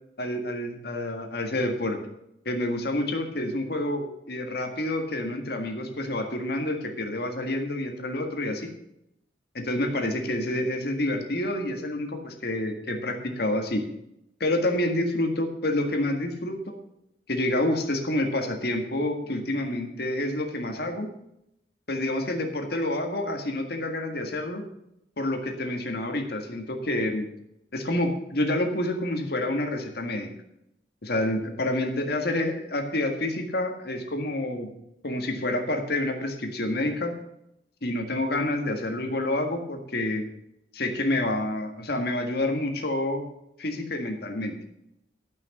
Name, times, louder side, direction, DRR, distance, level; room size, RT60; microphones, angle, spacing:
voice 1, 0.2-2.0 2.4-8.7 9.5-13.8 14.4-16.8 17.3-21.1 21.9-24.6 25.2-27.3 27.7-30.3 31.0-34.7 35.0-37.1 37.8-40.2 40.7-43.2 43.6-44.5, left 1 dB, 65° left, 4 dB, 1.8 m, -28 dB
12.5 x 6.1 x 7.2 m, 0.80 s
head